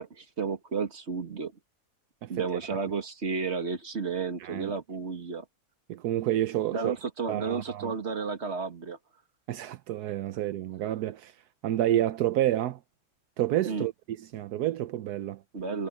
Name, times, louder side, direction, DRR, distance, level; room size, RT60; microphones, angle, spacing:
voice 1, 0.0-1.5 2.3-5.4 6.7-9.0 13.7-13.9 15.5-15.9, right 5 dB, 45° right, 2.3 m, -32 dB
voice 2, 4.4-4.7 5.9-6.9 7.3-7.9 9.5-11.3 11.6-12.8 13.4-15.4, right 13 dB, 80° right, 1.2 m, -29 dB
omnidirectional pair, 1.7 m